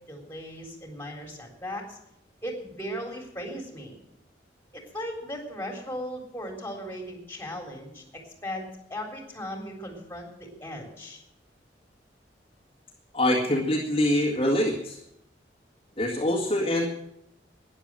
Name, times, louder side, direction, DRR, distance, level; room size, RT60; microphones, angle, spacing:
voice 1, 0.1-2.0 2.4-4.0 4.7-8.0 8.4-11.2, equal, 10° left, 1 dB, 3.6 m, -37 dB
voice 2, 13.1-15.0 16.0-16.9, left 1 dB, 30° left, -4 dB, 2.0 m, -24 dB
13.0 x 10.5 x 7.5 m, 0.78 s
head